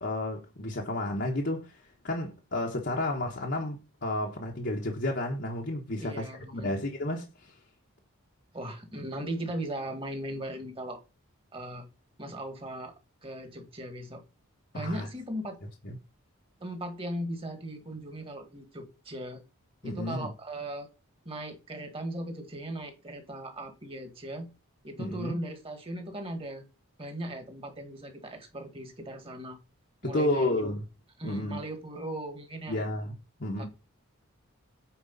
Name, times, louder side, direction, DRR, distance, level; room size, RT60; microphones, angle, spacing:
voice 1, 0.0-1.8 2.0-6.3 6.5-7.6 14.7-15.1 15.8-16.0 19.8-20.3 25.0-25.4 30.0-30.8 31.2-31.6 32.7-33.1 33.4-33.7, left 1 dB, 50° left, 1.2 m, -31 dB
voice 2, 6.0-6.7 8.5-11.0 11.5-11.9 12.2-12.9 13.2-14.2 14.7-15.6 16.6-19.4 19.8-20.9 21.2-24.5 24.8-26.6 27.0-29.6 30.0-30.5 31.2-32.8 33.6-33.7, right 1 dB, 25° right, 2.0 m, -38 dB
8.8 x 4.8 x 4.1 m
head